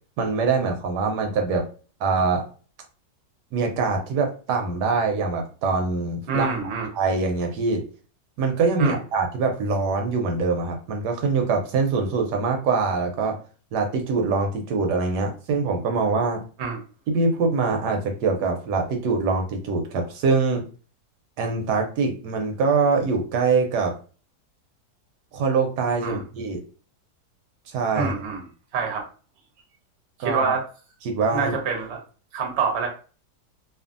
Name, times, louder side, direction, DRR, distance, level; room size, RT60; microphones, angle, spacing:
voice 1, 0.2-1.7 2.0-2.4 3.5-6.5 6.9-7.8 8.4-13.4 13.7-16.4 17.1-20.6 21.4-24.0 25.3-26.6 27.7-28.1 30.2-30.5 31.0-31.5, right 4 dB, 85° right, 3 dB, 1.2 m, -23 dB
voice 2, 6.3-6.9 8.8-9.0 16.6-16.8 26.0-26.2 27.9-28.4 28.7-29.0 30.2-30.6 31.3-32.0 32.3-32.9, right 5 dB, 50° right, 2 dB, 0.9 m, -26 dB
2.7 x 2.5 x 2.4 m, 0.37 s
omnidirectional pair, 1.8 m